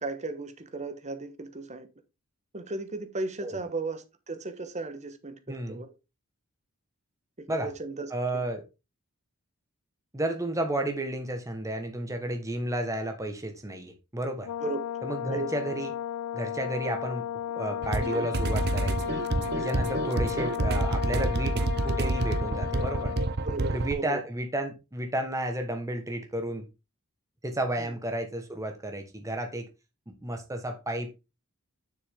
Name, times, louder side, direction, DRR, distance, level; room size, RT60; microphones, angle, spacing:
voice 1, 0.0-1.9 2.5-5.9 7.4-8.4 14.6-14.8 15.3-15.5 23.4-24.2 27.8-27.9, right 3 dB, 35° right, 1.0 m, -36 dB
voice 2, 5.5-5.8 7.5-7.7 8.1-8.6 10.1-14.5 15.0-15.9 16.3-17.2 17.5-19.3 19.6-21.6 21.8-23.2 23.7-26.7 27.4-29.7 30.1-31.1, right 1 dB, 15° right, 1.3 m, -32 dB
Brass instrument, 14.4-23.3, left 10 dB, 85° left, 0.3 m, -34 dB
sound 1, 17.8-23.9, right 2 dB, 50° right, 0.7 m, -28 dB
6.9 x 6.6 x 3.6 m
head